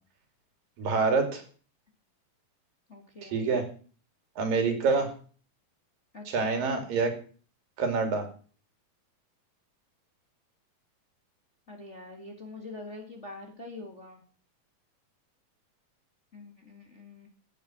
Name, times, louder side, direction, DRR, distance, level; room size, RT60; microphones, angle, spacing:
voice 1, 0.8-1.4 3.2-3.6 4.4-5.1 6.3-7.1 7.8-8.3, right 4 dB, 75° right, 6 dB, 4.3 m, -26 dB
voice 2, 2.9-3.5 6.1-6.7 11.7-14.2 16.3-17.3, left 2 dB, 25° left, 2 dB, 1.7 m, -44 dB
14.0 x 9.1 x 6.0 m, 0.41 s
omnidirectional pair, 4.0 m